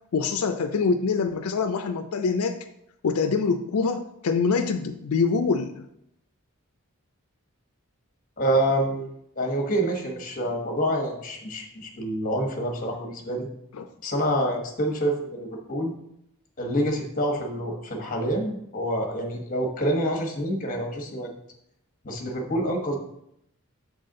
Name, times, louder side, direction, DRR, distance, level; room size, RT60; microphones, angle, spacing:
voice 1, 0.1-2.7 3.0-5.8 13.7-13.9, left 5 dB, 90° left, 7 dB, 0.4 m, -25 dB
voice 2, 8.4-13.5 14.0-15.9 16.6-21.3 22.0-23.0, right 1 dB, 40° left, 3 dB, 1.1 m, -27 dB
7.1 x 4.1 x 3.8 m, 0.78 s
head